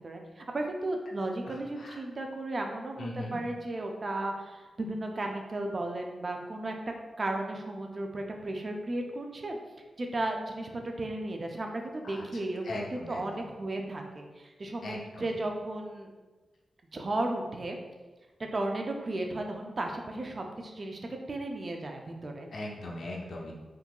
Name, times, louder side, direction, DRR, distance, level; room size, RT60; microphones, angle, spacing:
voice 1, 0.0-6.7 7.2-9.6 10.0-16.1 16.9-17.8 18.5-21.0 21.3-22.5, right 2 dB, 35° right, 2 dB, 0.3 m, -34 dB
voice 2, 1.4-2.0 3.0-3.4 12.0-12.2 12.6-13.2 14.8-15.2 22.5-23.5, left 1 dB, 65° left, -1 dB, 0.5 m, -39 dB
3.6 x 2.8 x 2.2 m, 1.2 s
wide cardioid pair, 175°, 0 cm